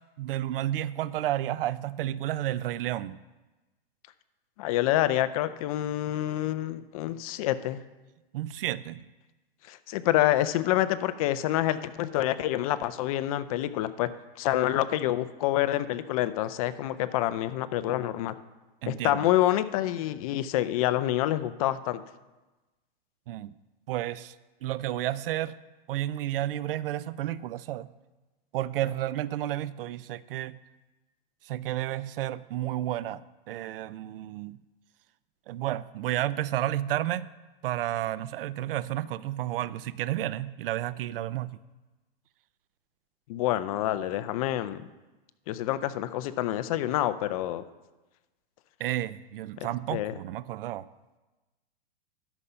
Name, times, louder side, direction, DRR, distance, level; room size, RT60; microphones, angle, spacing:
voice 1, 0.2-3.2 8.3-9.0 18.8-19.2 23.3-23.5 23.9-24.3 24.6-25.6 25.9-27.9 28.5-30.6 31.5-33.2 33.5-34.6 35.5-37.3 37.6-41.6 48.8-50.9, right 13 dB, 65° right, 18 dB, 0.5 m, -31 dB
voice 2, 4.6-7.8 9.7-14.1 14.4-18.3 18.9-22.0 43.3-44.8 45.5-47.6 49.6-50.1, left 13 dB, 35° left, 14 dB, 0.4 m, -27 dB
12.0 x 5.5 x 5.6 m, 1.1 s
hypercardioid pair, 145°, 30 cm